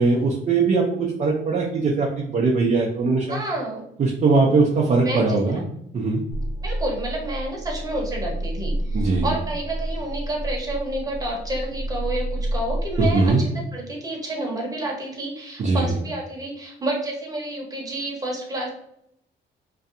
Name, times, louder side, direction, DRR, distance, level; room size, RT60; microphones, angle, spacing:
voice 1, 0.0-3.3 4.0-5.6 5.9-6.2 8.9-9.3 13.0-13.4 15.6-15.9, right 3 dB, 40° right, -1 dB, 0.5 m, -20 dB
voice 2, 3.3-3.8 5.0-5.6 6.6-18.7, right 1 dB, 20° right, -1 dB, 0.9 m, -29 dB
sound 1, 6.3-13.3, right 1 dB, 70° left, 0.7 m, -29 dB
2.6 x 2.2 x 2.5 m, 0.73 s
cardioid pair, 90°, 20 cm